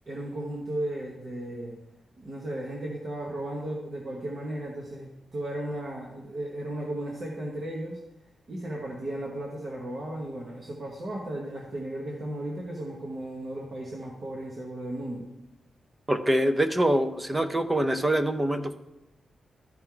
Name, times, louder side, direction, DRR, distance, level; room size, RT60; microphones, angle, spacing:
voice 1, 0.1-1.8 2.2-8.0 8.5-15.3, right 1 dB, 40° right, -2 dB, 1.1 m, -35 dB
voice 2, 16.1-18.7, right 1 dB, 15° right, 8 dB, 0.5 m, -24 dB
13.0 x 4.5 x 3.8 m, 0.94 s
wide cardioid pair, 145°, 0 cm